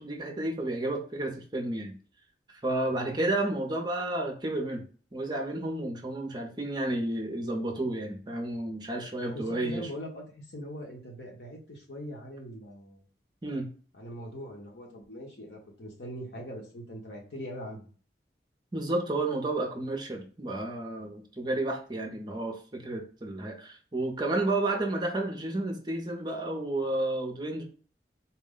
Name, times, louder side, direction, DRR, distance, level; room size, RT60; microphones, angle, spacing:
voice 1, 0.0-1.9 2.6-4.8 5.1-9.9 13.4-13.7 18.7-27.6, right 2 dB, 25° right, 2 dB, 0.6 m, -31 dB
voice 2, 9.2-13.0 14.0-17.9, equal, 70° left, 0 dB, 1.2 m, -42 dB
4.2 x 2.1 x 3.7 m, 0.41 s
head